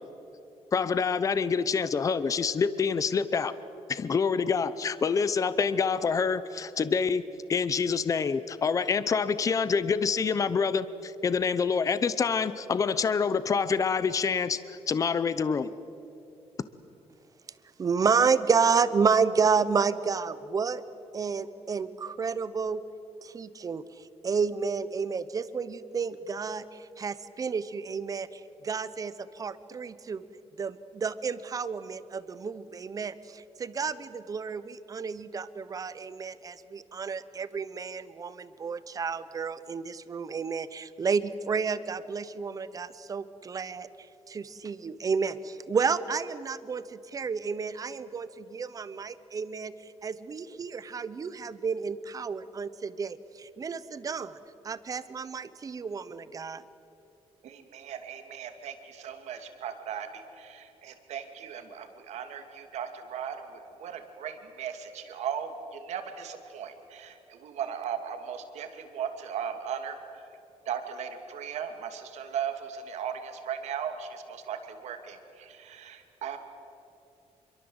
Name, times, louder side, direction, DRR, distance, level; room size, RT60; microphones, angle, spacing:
voice 1, 0.7-3.5 3.9-7.2 7.5-15.7, left 5 dB, 30° left, 15 dB, 0.7 m, -26 dB
voice 2, 17.8-20.8 21.1-22.8 23.2-30.2 30.6-43.9 44.3-54.4 54.6-56.6, right 5 dB, 30° right, 15 dB, 0.9 m, -30 dB
voice 3, 57.4-70.0 70.7-76.4, right 8 dB, 85° right, 6 dB, 2.6 m, -37 dB
26.5 x 23.5 x 8.1 m, 2.9 s
cardioid pair, 155°, 11 cm